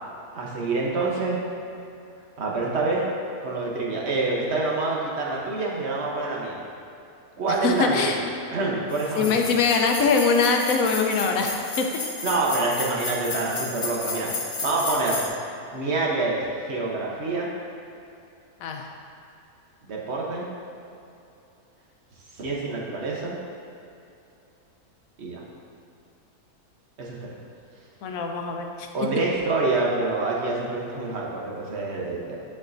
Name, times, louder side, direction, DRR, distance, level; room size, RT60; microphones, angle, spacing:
voice 1, 0.3-1.4 2.4-3.1 3.4-6.6 7.4-8.2 8.5-9.5 12.2-14.3 14.6-15.3 15.7-16.4 16.7-17.5 19.8-20.5 22.3-23.4 25.2-25.4 27.0-27.2 28.9-32.4, right 3 dB, 50° right, -3 dB, 1.1 m, -26 dB
voice 2, 7.5-8.2 9.1-11.9 18.6-18.9 28.0-28.9, left 4 dB, 65° left, 3 dB, 1.0 m, -23 dB
sound 1, 8.9-15.3, left 3 dB, 45° left, 0.7 m, -33 dB
10.5 x 4.7 x 2.6 m, 2.7 s
omnidirectional pair, 1.7 m